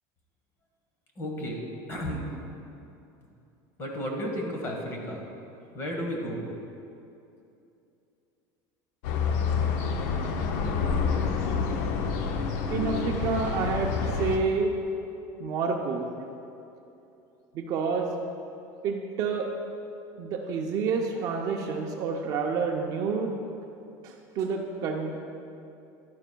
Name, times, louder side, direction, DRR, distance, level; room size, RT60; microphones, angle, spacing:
voice 1, 1.2-1.6 1.9-2.2 3.8-5.2 5.7-6.5, equal, 30° left, 0 dB, 1.2 m, -33 dB
sound 1, 9.0-14.4, left 5 dB, 65° left, 0.6 m, -28 dB
voice 2, 12.7-13.9 14.2-14.7 15.4-16.1 17.5-18.1 18.8-19.5 20.2-23.3 24.0-25.2, right 5 dB, 40° right, 2 dB, 0.5 m, -28 dB
11.5 x 9.4 x 2.2 m, 2.7 s
cardioid pair, 175°, 10 cm